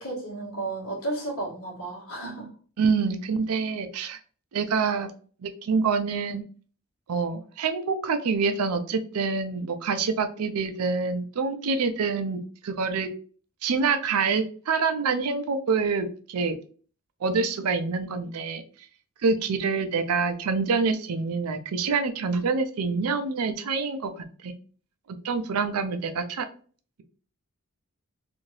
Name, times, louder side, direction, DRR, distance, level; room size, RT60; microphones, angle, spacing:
voice 1, 0.0-2.5, right 2 dB, 70° left, -2 dB, 1.3 m, -33 dB
voice 2, 2.8-4.2 4.5-5.1 5.4-6.4 7.1-13.1 13.6-16.6 17.2-18.6 19.2-24.5 25.2-26.5, right 4 dB, 85° right, 9 dB, 0.5 m, -26 dB
2.7 x 2.6 x 3.1 m, 0.41 s
head